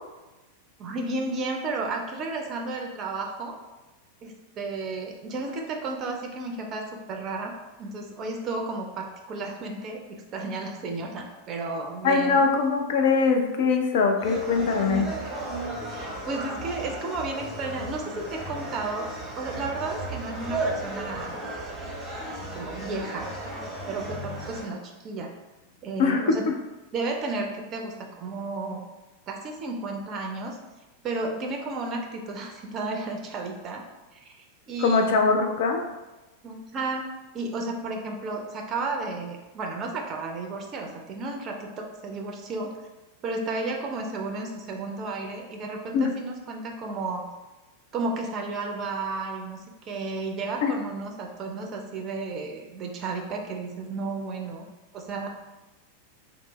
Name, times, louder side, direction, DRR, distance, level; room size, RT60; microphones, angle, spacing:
voice 1, 0.8-3.6 4.2-7.5 7.8-12.4 14.2-19.1 19.4-21.3 22.3-23.3 23.9-25.3 25.8-26.4 26.9-28.8 29.3-30.6 31.0-33.8 34.1-34.2 34.7-35.2 36.4-37.1 37.3-42.7 43.2-47.3 47.9-49.6 49.8-54.7 54.9-55.3, right 3 dB, 30° right, 2 dB, 0.4 m, -33 dB
voice 2, 12.0-15.1 26.0-26.5 34.8-35.8 45.9-46.1 50.6-50.7, left 4 dB, 55° left, 4 dB, 0.4 m, -22 dB
sound 1, 14.2-24.6, right 2 dB, 10° right, 0.8 m, -35 dB
3.2 x 2.0 x 3.0 m, 1.1 s
figure-of-eight pair, 90°, 0 cm